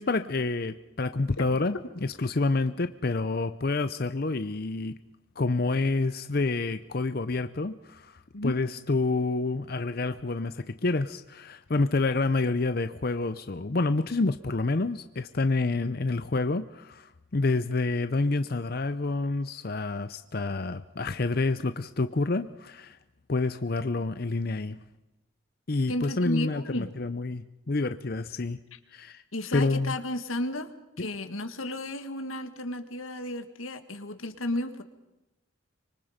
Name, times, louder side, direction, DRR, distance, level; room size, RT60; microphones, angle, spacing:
voice 1, 0.0-1.8 2.0-5.0 5.4-23.0 23.3-24.8 25.7-28.6 28.9-29.2 29.5-29.9 31.0-31.1, left 3 dB, 50° left, 11 dB, 0.7 m, -28 dB
voice 2, 25.9-26.9 28.7-28.8 29.3-30.7 31.0-34.8, left 1 dB, 90° left, 8 dB, 1.9 m, -33 dB
25.5 x 24.0 x 5.2 m, 0.98 s
head